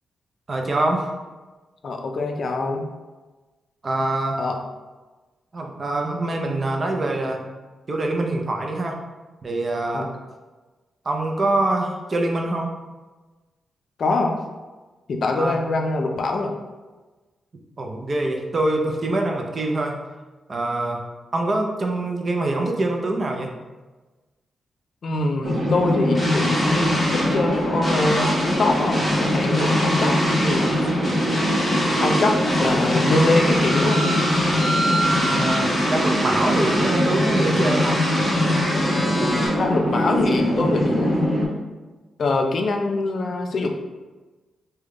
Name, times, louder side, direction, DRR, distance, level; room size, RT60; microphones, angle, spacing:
voice 1, 0.5-1.1 3.8-4.4 5.5-7.4 7.9-9.0 9.4-10.1 11.1-12.7 15.4-15.6 17.8-20.0 20.5-21.0 21.3-23.5 35.3-38.0, right 2 dB, 35° right, 2 dB, 0.5 m, -24 dB
voice 2, 1.8-2.9 4.4-4.6 9.9-10.1 14.0-14.4 15.1-16.5 25.0-31.1 32.0-34.1 39.2-41.2 42.2-43.7, left 2 dB, 55° left, 3 dB, 0.4 m, -24 dB
sound 1, 25.4-41.5, equal, 80° right, 0.9 m, -22 dB
sound 2, 26.1-39.5, equal, 10° left, 1.0 m, -26 dB
3.4 x 2.2 x 3.6 m, 1.2 s
wide cardioid pair, 120°, 0 cm